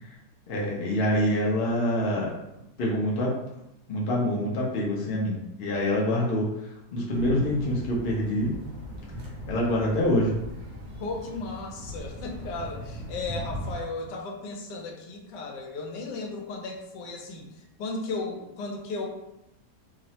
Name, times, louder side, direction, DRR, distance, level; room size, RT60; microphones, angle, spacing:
voice 1, 0.5-2.3 2.8-3.3 3.9-6.5 6.9-8.5 9.5-10.3, left 1 dB, 60° left, -3 dB, 0.6 m, -25 dB
sound 1, 7.1-13.8, equal, 60° right, 0.8 m, -39 dB
voice 2, 11.0-19.1, left 3 dB, 85° left, 1 dB, 1.2 m, -35 dB
3.0 x 2.0 x 2.7 m, 0.86 s
omnidirectional pair, 1.8 m